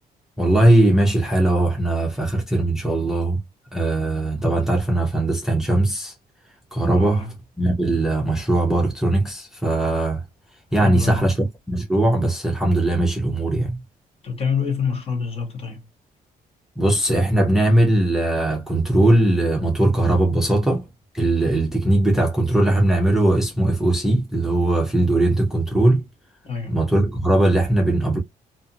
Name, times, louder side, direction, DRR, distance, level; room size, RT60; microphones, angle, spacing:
voice 1, 0.4-3.4 3.7-6.1 6.7-7.3 7.6-10.2 10.7-13.8 16.8-20.9 21.1-26.0 26.7-28.2, right 1 dB, 5° right, 0.6 m, -19 dB
voice 2, 7.0-7.3 10.7-11.3 14.2-15.8 26.4-26.8, left 6 dB, 40° left, 1.2 m, -26 dB
2.6 x 2.5 x 2.6 m
cardioid pair, 135°, 15 cm